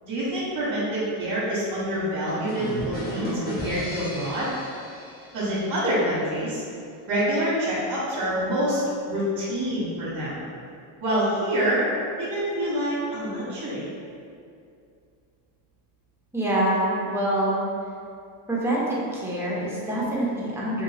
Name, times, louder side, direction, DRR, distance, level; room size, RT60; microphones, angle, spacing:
voice 1, 0.0-4.5 5.3-6.6 7.1-8.8 9.1-10.5 11.0-11.8 12.2-13.9, right 1 dB, 45° right, -10 dB, 1.0 m, -26 dB
sound 1, 2.3-6.0, left 1 dB, 20° left, 1.1 m, -34 dB
voice 2, 16.3-17.5 18.5-20.8, right 1 dB, 5° right, -6 dB, 0.8 m, -25 dB
2.7 x 2.6 x 3.1 m, 2.4 s
cardioid pair, 85°, 49 cm